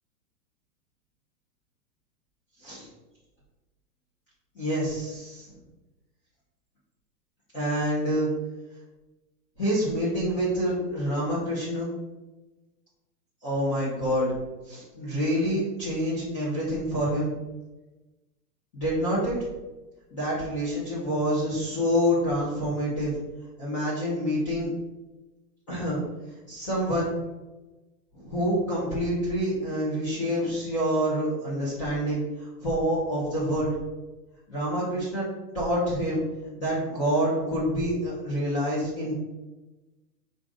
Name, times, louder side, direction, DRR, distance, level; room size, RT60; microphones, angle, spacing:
voice 1, 4.6-5.5 7.5-8.3 9.6-11.9 13.4-14.3 14.7-17.3 18.7-19.3 20.1-23.1 23.6-24.7 25.7-26.0 26.5-27.1 28.1-32.2 32.6-33.7 34.5-35.3 35.5-36.2 36.6-39.1, equal, 20° left, -9 dB, 0.7 m, -27 dB
4.9 x 2.5 x 3.7 m, 1.1 s
hypercardioid pair, 165°, 50 cm